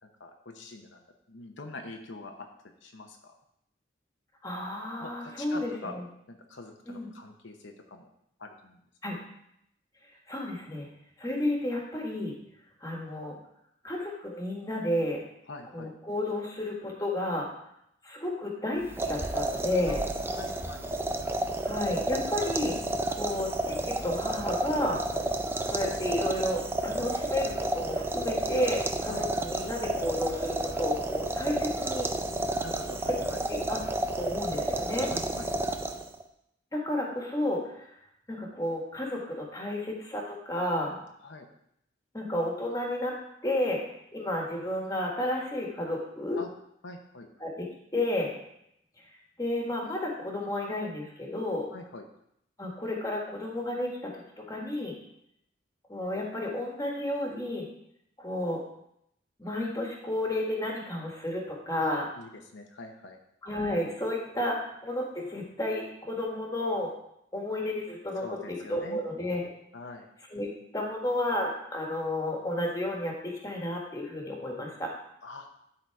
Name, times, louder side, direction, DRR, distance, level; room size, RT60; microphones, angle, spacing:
voice 1, 0.0-1.0 1.3-2.3 2.8-3.3 5.0-6.0 6.3-8.1 8.4-8.8 15.5-15.9 19.9-20.0 20.3-20.9 29.1-29.3 32.6-33.4 35.1-35.5 41.2-41.5 46.4-46.5 46.8-47.3 51.7-52.0 61.8-63.2 68.2-69.0 69.7-70.1 75.2-75.5, left 2 dB, 75° left, 3 dB, 0.9 m, -44 dB
voice 2, 4.4-6.0 6.9-7.1 9.0-9.1 10.3-10.9 11.2-12.4 12.8-13.4 13.8-15.2 15.7-17.5 18.0-20.0 21.6-22.8 23.1-25.0 25.7-32.1 33.5-33.8 34.2-35.1 36.7-37.9 38.3-41.0 42.1-43.8 44.1-46.4 47.4-48.3 49.4-51.7 52.6-55.0 55.9-57.7 58.2-58.6 59.4-62.1 63.4-66.9 67.3-69.5 70.3-74.9, left 1 dB, 20° left, -1 dB, 1.6 m, -32 dB
sound 1, 18.8-36.2, right 2 dB, 10° right, 0.4 m, -31 dB
12.0 x 4.0 x 4.7 m, 0.76 s
head